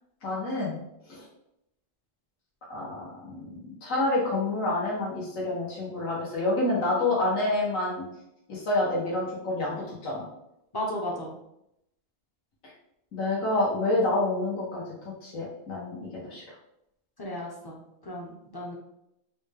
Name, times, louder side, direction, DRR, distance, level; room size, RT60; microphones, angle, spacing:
voice 1, 0.2-0.8 1.0-1.3 2.7-8.1 8.5-10.2 12.6-12.7 13.1-16.4, left 2 dB, 85° left, -6 dB, 1.5 m, -28 dB
voice 2, 10.7-11.3 17.2-18.8, left 1 dB, 30° left, -2 dB, 0.4 m, -35 dB
4.1 x 2.2 x 3.3 m, 0.81 s
omnidirectional pair, 1.3 m